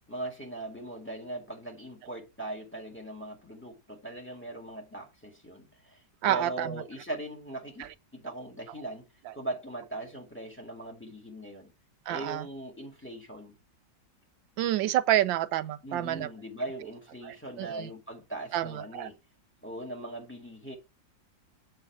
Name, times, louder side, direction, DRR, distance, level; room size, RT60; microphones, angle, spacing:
voice 1, 0.1-6.0 6.3-9.1 9.3-11.7 12.1-13.5 15.8-19.2 19.6-20.8, right 1 dB, 5° left, 2.0 m, -40 dB
voice 2, 6.2-6.8 12.1-12.4 14.6-16.3 17.2-17.9 18.5-19.1, right 13 dB, 85° right, 1.4 m, -28 dB
7.8 x 5.7 x 5.9 m
omnidirectional pair, 2.0 m